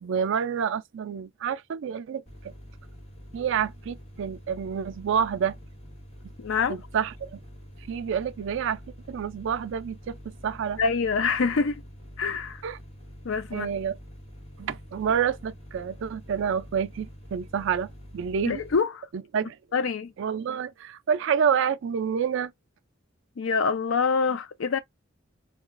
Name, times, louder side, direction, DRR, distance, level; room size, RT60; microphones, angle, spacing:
voice 1, 0.0-2.5 3.3-5.6 6.7-7.4 7.8-8.8 9.1-10.2 10.4-10.8 12.6-12.8 13.5-14.0 14.6-18.6 19.3-19.6 20.2-22.5, right 7 dB, 65° right, 0.4 m, -28 dB
sound 1, 2.3-18.8, equal, 30° left, 1.4 m, -46 dB
voice 2, 6.4-6.8 10.8-11.8 12.2-12.6 13.2-13.7 18.5-19.1 19.7-20.1 23.4-24.8, left 5 dB, 70° left, 0.5 m, -25 dB
3.7 x 2.4 x 2.4 m
head